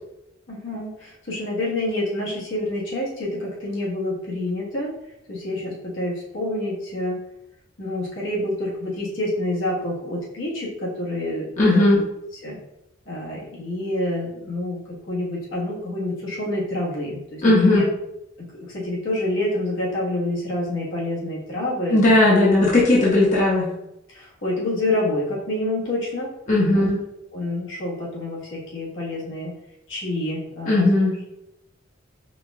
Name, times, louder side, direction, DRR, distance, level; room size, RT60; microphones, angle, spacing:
voice 1, 0.5-4.9 5.3-7.2 7.8-11.5 11.9-12.0 12.4-12.6 13.1-14.8 15.1-17.8 18.4-22.0 24.1-26.3 26.7-26.9 27.3-29.5 29.9-30.8, left 1 dB, 70° left, -5 dB, 1.5 m, -27 dB
voice 2, 11.6-12.0 17.4-17.8 21.9-23.7 26.5-27.0 30.7-31.1, left 2 dB, 40° left, -5 dB, 0.9 m, -17 dB
4.9 x 2.3 x 3.5 m, 0.86 s
head